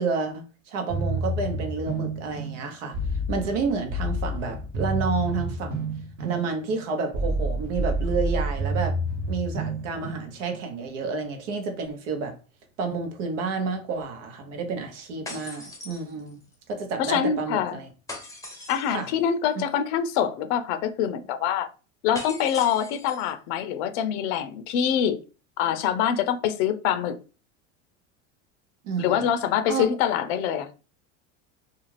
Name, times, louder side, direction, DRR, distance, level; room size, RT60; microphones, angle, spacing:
voice 1, 0.0-3.0 3.3-5.9 6.2-9.0 9.3-12.4 12.8-16.4 16.7-17.9 18.9-19.1 28.8-29.3 29.7-29.9, right 4 dB, 75° right, 0.9 m, -30 dB
sound 1, 0.9-10.7, right 1 dB, 40° right, 0.9 m, -29 dB
sound 2, 15.3-16.5 18.1-19.1 22.1-23.3, left 2 dB, 10° left, 0.7 m, -40 dB
voice 2, 17.0-17.8 18.7-21.7 22.0-25.2 25.6-27.1 29.0-30.7, left 9 dB, 65° left, 0.5 m, -25 dB
2.4 x 2.3 x 3.1 m
supercardioid pair, 115°, 38 cm